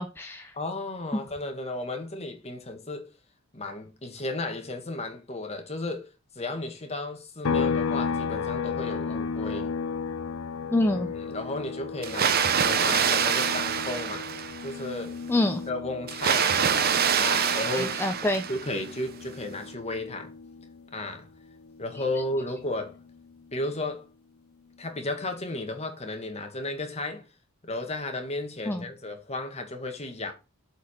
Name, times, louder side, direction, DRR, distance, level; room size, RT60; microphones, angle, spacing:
voice 1, 0.0-0.5 1.1-1.2 10.7-11.1 15.3-15.6 17.7-18.4 28.7-28.9, left 1 dB, 10° left, 0.6 m, -26 dB
voice 2, 0.5-3.1 3.5-6.1 6.3-9.7 10.9-14.3 14.6-15.2 15.7-18.0 18.5-20.3 20.9-21.3 21.8-23.0 23.5-24.1 24.8-27.2 27.6-30.3, left 2 dB, 30° left, 1.7 m, -34 dB
sound 1, 7.4-21.0 21.3-23.5, left 5 dB, 85° left, 0.5 m, -34 dB
Water, 12.0-14.8 16.1-18.9, right 7 dB, 50° right, 0.8 m, -25 dB
7.9 x 4.8 x 5.8 m
head